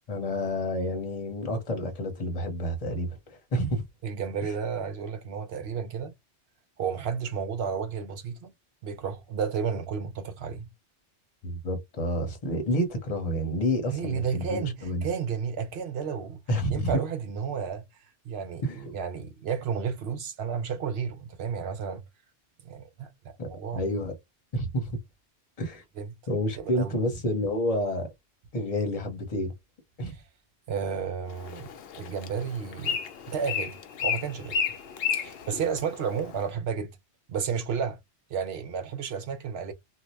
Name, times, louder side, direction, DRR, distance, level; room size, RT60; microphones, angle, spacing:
voice 1, 0.1-3.8 11.4-15.0 16.5-17.0 18.6-18.8 23.4-23.5 23.7-24.1 24.5-24.9 25.6-25.8 26.3-28.1 28.5-29.5 30.0-30.1, equal, 35° left, 1.0 m, -29 dB
voice 2, 4.0-6.1 6.8-8.5 8.8-10.7 13.9-16.4 16.7-17.8 18.2-22.0 22.6-23.1 23.5-23.8 26.0-26.1 26.6-27.0 30.1-30.2 30.7-31.7 32.0-33.0 33.3-33.8 34.0-34.6 35.1-36.9 37.3-38.0 38.3-39.7, right 6 dB, 65° right, 0.9 m, -32 dB
Bird, 31.3-36.4, left 7 dB, 65° left, 0.8 m, -33 dB
2.7 x 2.3 x 3.1 m
omnidirectional pair, 1.2 m